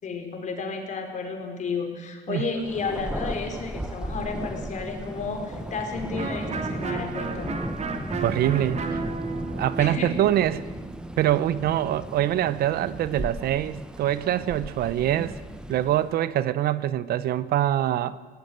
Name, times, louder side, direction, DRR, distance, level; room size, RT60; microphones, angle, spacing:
voice 1, 0.0-7.6 9.8-10.1 11.8-11.9, left 4 dB, 45° left, 4 dB, 4.7 m, -32 dB
Thunder, 2.6-16.2, right 1 dB, 5° right, 1.3 m, -36 dB
Electric guitar, 6.2-11.8, right 4 dB, 40° right, 2.6 m, -34 dB
voice 2, 8.2-9.0 9.6-10.6 11.2-15.3 15.7-18.2, right 12 dB, 65° right, 16 dB, 0.9 m, -24 dB
18.5 x 17.5 x 9.3 m, 1.5 s
cardioid pair, 110°, 17 cm